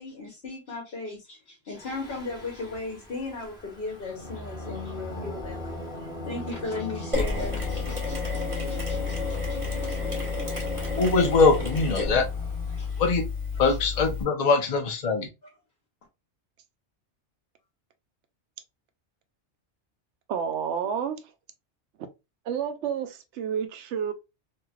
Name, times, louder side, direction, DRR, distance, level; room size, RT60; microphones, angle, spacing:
voice 1, 0.0-10.0 12.7-13.0, left 3 dB, 60° left, 1.3 m, -37 dB
Singing, 1.7-13.1, left 1 dB, 5° right, 1.2 m, -39 dB
Mechanisms, 7.1-14.2, left 4 dB, 30° right, 1.4 m, -30 dB
voice 2, 11.0-12.3 13.0-13.2 13.6-15.3, left 4 dB, 40° left, 0.7 m, -22 dB
voice 3, 20.3-21.2 22.5-24.1, right 7 dB, 80° right, 0.9 m, -30 dB
3.1 x 2.8 x 2.3 m
omnidirectional pair, 1.2 m